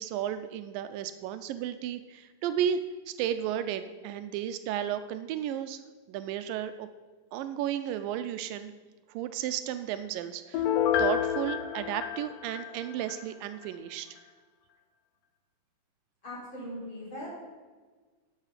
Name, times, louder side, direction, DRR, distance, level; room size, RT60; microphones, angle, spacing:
voice 1, 0.0-2.8 3.1-5.8 6.1-6.9 7.3-8.7 9.1-10.7 11.0-14.1, right 10 dB, 85° right, 10 dB, 2.2 m, -33 dB
Piano, 10.5-13.2 13.6-13.7, left 9 dB, 85° left, 2.7 m, -29 dB
voice 2, 16.2-17.3, left 1 dB, 35° left, -6 dB, 4.9 m, -40 dB
11.5 x 8.2 x 5.7 m, 1.4 s
omnidirectional pair, 4.0 m